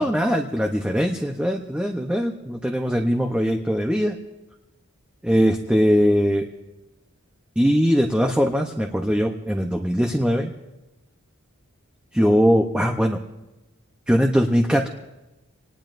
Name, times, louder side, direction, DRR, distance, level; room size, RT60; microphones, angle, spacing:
voice 1, 0.0-4.2 5.2-6.5 7.6-10.5 12.1-13.2 14.1-14.9, equal, 5° right, 3 dB, 0.7 m, -21 dB
26.0 x 19.5 x 2.5 m, 1.0 s
head